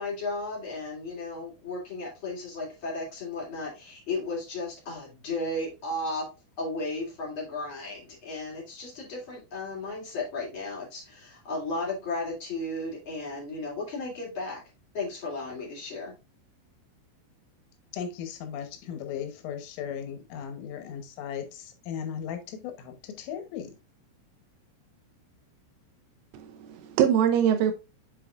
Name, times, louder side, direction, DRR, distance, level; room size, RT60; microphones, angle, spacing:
voice 1, 0.0-6.3 6.6-14.6 14.9-16.1, left 2 dB, 30° left, 2.7 m, -34 dB
voice 2, 17.9-23.8, left 8 dB, 80° left, 3.6 m, -37 dB
voice 3, 26.3-27.7, right 9 dB, 80° right, 3.0 m, -23 dB
7.7 x 5.9 x 2.4 m
omnidirectional pair, 5.9 m